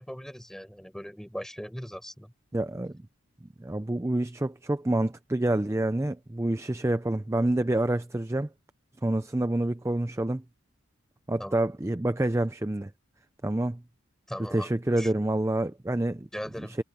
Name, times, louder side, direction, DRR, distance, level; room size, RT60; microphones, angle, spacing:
voice 1, 0.0-2.3 11.4-11.5 14.3-14.7 15.0-15.2 16.3-16.8, equal, ahead, 5.7 m, -39 dB
voice 2, 2.5-3.0 3.6-8.5 9.0-10.4 11.3-12.9 13.4-13.8 14.5-16.3 16.6-16.8, right 1 dB, 15° right, 0.4 m, -27 dB
head